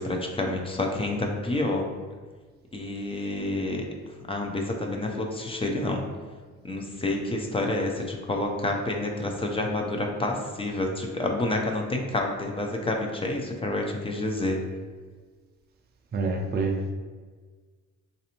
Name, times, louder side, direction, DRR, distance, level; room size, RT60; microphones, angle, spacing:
voice 1, 0.0-1.9 2.7-3.8 4.3-6.0 6.6-14.6, left 2 dB, 20° left, 1 dB, 0.5 m, -28 dB
voice 2, 16.1-16.9, right 3 dB, 35° right, 2 dB, 0.5 m, -27 dB
4.0 x 2.6 x 2.8 m, 1.5 s
cardioid pair, 90°, 30 cm